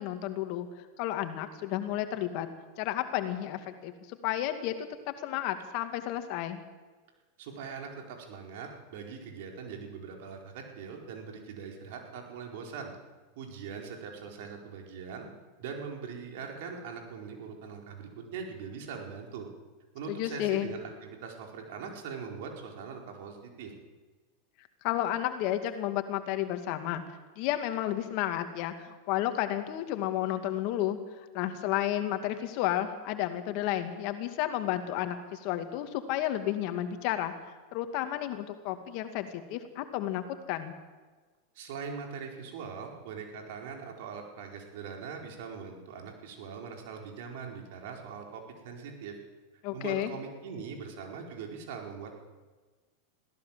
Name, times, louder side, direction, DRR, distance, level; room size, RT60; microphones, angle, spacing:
voice 1, 0.0-2.5 2.8-4.7 5.2-6.6 20.1-20.7 24.8-27.0 27.4-37.3 37.7-40.7 49.6-50.1, left 12 dB, 55° left, 8 dB, 2.2 m, -32 dB
voice 2, 7.4-12.9 13.3-15.3 15.6-19.5 19.9-23.7 41.5-49.2 49.7-52.2, right 6 dB, 65° right, 2 dB, 4.7 m, -41 dB
21.5 x 16.0 x 7.5 m, 1.3 s
hypercardioid pair, 105°, 0 cm